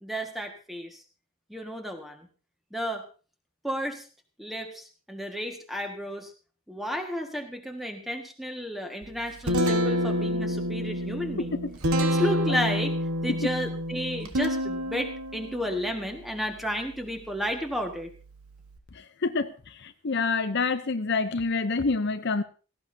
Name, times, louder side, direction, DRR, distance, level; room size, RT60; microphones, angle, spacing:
voice 1, 0.0-1.0 1.5-2.3 2.7-3.0 3.6-4.0 4.4-6.3 6.7-11.6 12.0-18.1, equal, ahead, 3 dB, 1.7 m, -32 dB
Guitar, 9.0-18.8, equal, 80° right, 1.5 m, -29 dB
voice 2, 19.2-22.4, left 4 dB, 50° left, 9 dB, 0.7 m, -27 dB
17.5 x 15.5 x 2.8 m, 0.36 s
head